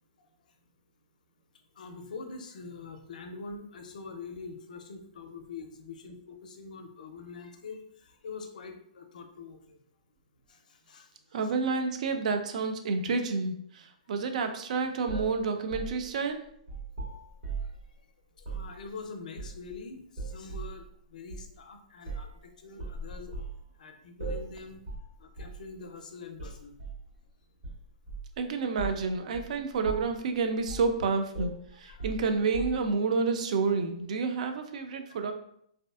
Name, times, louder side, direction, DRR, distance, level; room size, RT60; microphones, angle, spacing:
voice 1, 1.8-9.8 10.5-11.1 18.4-23.3 23.8-24.8 25.2-26.7 31.9-32.1 35.1-35.2, left 4 dB, 75° left, 5 dB, 0.4 m, -44 dB
voice 2, 11.3-16.4 28.4-35.3, right 4 dB, 60° right, 7 dB, 0.3 m, -29 dB
sound 1, 15.1-17.8 18.4-18.7 19.4-19.8 20.2-20.8 21.3-21.5 22.1-22.4 22.8-23.6 24.2-24.6 24.9-25.1 25.4-25.6 26.4-27.0 27.6-28.4 28.8-29.0 29.3-29.5 29.8-30.2 30.7-30.9 31.3-33.0, right 4 dB, 85° right, 1.2 m, -38 dB
2.5 x 2.3 x 2.3 m, 0.70 s
hypercardioid pair, 150°, 4 cm